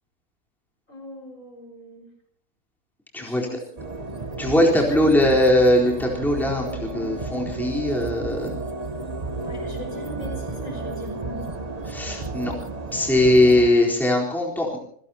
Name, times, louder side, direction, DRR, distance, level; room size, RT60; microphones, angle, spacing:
voice 1, 0.9-2.1 3.2-3.8 4.4-5.5 9.4-11.6, left 1 dB, 50° left, 3 dB, 5.8 m, -38 dB
voice 2, 3.1-3.5 4.4-8.5 11.9-12.5 12.9-14.8, left 1 dB, ahead, -1 dB, 4.0 m, -20 dB
sound 1, 3.8-13.7, right 3 dB, 25° right, 1.1 m, -32 dB
28.0 x 16.5 x 2.9 m, 0.64 s
omnidirectional pair, 1.8 m